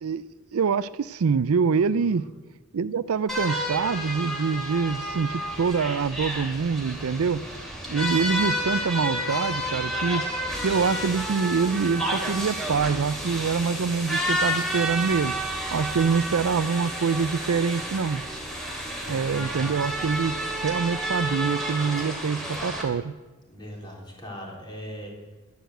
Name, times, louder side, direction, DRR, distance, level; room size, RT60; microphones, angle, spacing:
voice 1, 0.5-2.2 2.7-7.4 7.9-10.2 10.6-15.3 15.7-18.2 19.1-23.2, right 5 dB, 70° right, 17 dB, 0.4 m, -25 dB
voice 2, 1.9-2.4 19.0-20.0 23.5-25.1, equal, 20° left, -1 dB, 3.8 m, -40 dB
sound 1, 3.3-22.8, equal, ahead, 2.9 m, -30 dB
11.5 x 11.5 x 7.9 m, 1.2 s
head